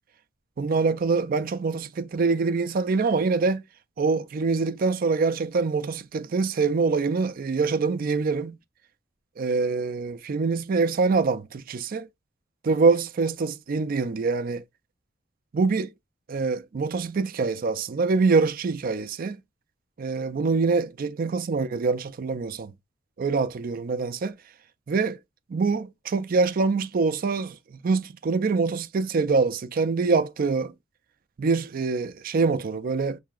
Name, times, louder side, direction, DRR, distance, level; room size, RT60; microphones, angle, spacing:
voice 1, 0.6-3.6 4.0-8.6 9.4-12.1 12.6-14.6 15.5-15.9 16.3-19.4 20.0-22.7 23.2-24.4 24.9-25.2 25.5-30.7 31.4-33.2, right 4 dB, 45° right, 0.4 m, -25 dB
5.7 x 2.7 x 2.4 m
head